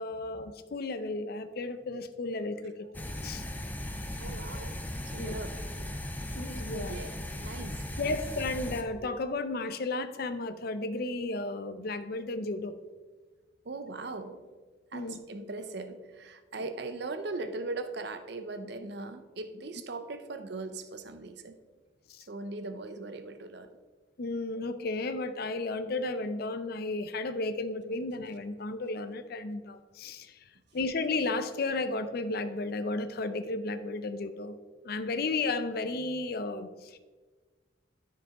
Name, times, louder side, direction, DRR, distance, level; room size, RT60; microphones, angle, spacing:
voice 1, 0.0-2.7 3.2-3.4 5.2-5.4 6.3-6.9 8.0-12.8 14.9-15.2 16.6-16.7 22.1-22.3 24.2-30.4 30.7-34.6 34.8-37.0, left 3 dB, 55° left, 11 dB, 0.5 m, -33 dB
sound 1, 2.9-8.8, left 1 dB, 10° left, 0.5 m, -37 dB
voice 2, 4.2-4.8 5.1-5.6 6.7-7.9 13.6-14.4 14.9-21.6 22.3-23.7, right 3 dB, 60° right, 9 dB, 0.7 m, -39 dB
13.0 x 4.7 x 3.7 m, 1.4 s
head